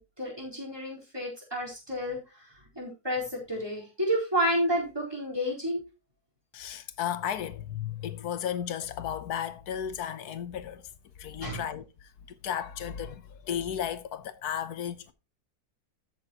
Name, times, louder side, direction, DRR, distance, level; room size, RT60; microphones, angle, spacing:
voice 1, 0.0-2.2 2.8-5.8 11.4-11.6, equal, 15° right, 4.2 m, -30 dB
voice 2, 6.5-10.8 11.2-11.8 12.3-15.1, left 9 dB, 90° left, 1.4 m, -34 dB
14.0 x 7.0 x 2.9 m
omnidirectional pair, 1.6 m